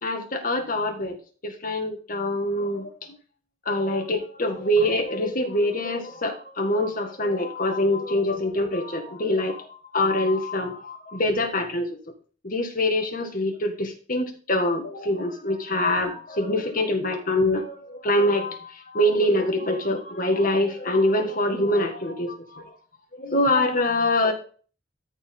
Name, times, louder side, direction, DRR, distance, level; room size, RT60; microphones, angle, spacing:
voice 1, 0.0-1.2 1.4-2.9 3.7-11.9 12.4-18.7 18.9-22.7 23.2-24.3, left 1 dB, 50° left, 4 dB, 1.9 m, -24 dB
13.5 x 4.9 x 3.8 m, 0.40 s
head